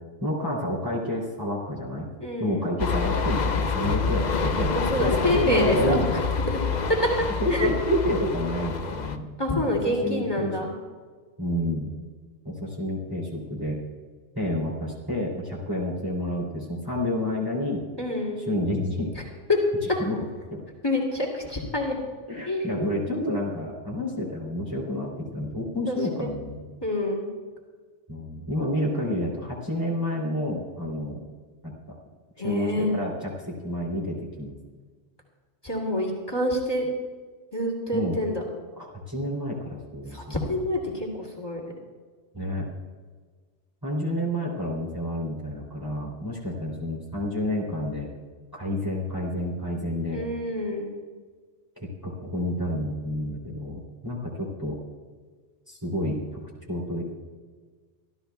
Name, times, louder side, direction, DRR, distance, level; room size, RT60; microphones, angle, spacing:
voice 1, 0.2-2.1 2.4-6.1 7.4-9.3 9.7-10.5 11.4-11.9 12.4-13.8 14.3-17.8 18.5-19.2 20.0-20.2 20.5-20.6 22.3-26.6 28.1-31.2 31.6-31.9 32.4-34.5 37.9-38.2 38.8-40.4 42.3-42.7 43.8-48.1 48.5-50.2 51.8-54.8 55.7-56.4 56.7-57.1, left 1 dB, 20° right, -4 dB, 3.1 m, -29 dB
voice 2, 2.2-2.6 4.7-6.2 6.5-6.6 6.9-7.1 7.5-7.7 9.4-10.7 18.0-18.5 19.5-19.6 20.8-21.9 22.5-22.8 25.9-26.3 26.8-27.3 32.4-32.9 35.6-36.9 37.5-38.4 40.1-41.7 50.1-50.9, left 1 dB, 20° left, -2 dB, 2.6 m, -27 dB
sound 1, 2.8-9.2, left 4 dB, 45° left, 0.7 m, -27 dB
26.0 x 13.5 x 2.3 m, 1.5 s
omnidirectional pair, 1.2 m